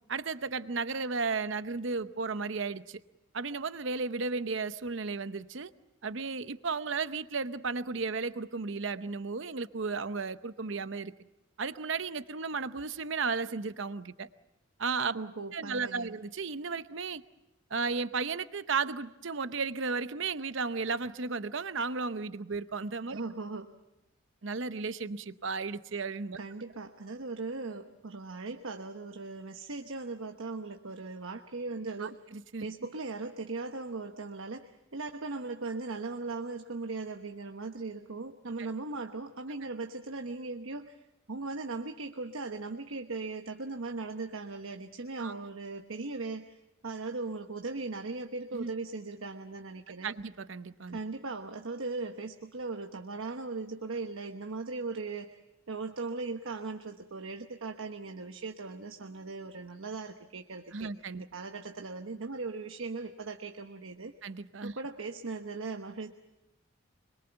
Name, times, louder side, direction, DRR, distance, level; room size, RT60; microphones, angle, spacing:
voice 1, 0.1-3.0 3.3-5.7 6.0-11.1 11.6-14.3 14.8-15.2 15.5-17.2 17.7-23.2 24.4-26.4 32.0-32.6 45.2-45.3 48.5-48.7 50.0-51.0 60.7-61.2 64.2-64.7, right 4 dB, 65° right, 13 dB, 0.8 m, -34 dB
voice 2, 15.1-16.1 23.1-23.7 26.4-32.2 32.6-41.0 41.3-46.6 46.8-50.1 50.9-55.4 55.7-64.1 64.6-66.1, right 3 dB, 85° right, 5 dB, 1.1 m, -38 dB
25.5 x 22.5 x 6.9 m, 0.94 s
head